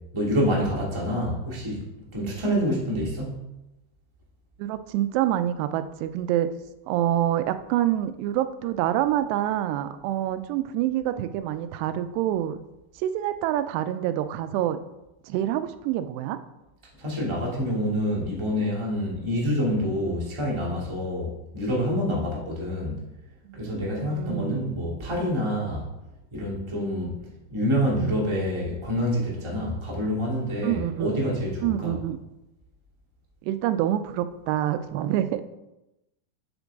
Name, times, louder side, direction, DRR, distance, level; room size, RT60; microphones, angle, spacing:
voice 1, 0.1-1.8 2.1-3.4 17.0-23.0 23.5-25.9 26.3-27.1 27.5-31.9, equal, 15° right, -4 dB, 1.1 m, -27 dB
voice 2, 4.6-6.5 6.9-12.6 13.0-14.8 15.3-16.4 23.5-23.6 24.1-24.7 30.6-31.1 31.6-32.2 33.4-35.4, right 12 dB, 85° right, 11 dB, 2.7 m, -26 dB
8.0 x 7.7 x 3.5 m, 0.94 s
omnidirectional pair, 4.8 m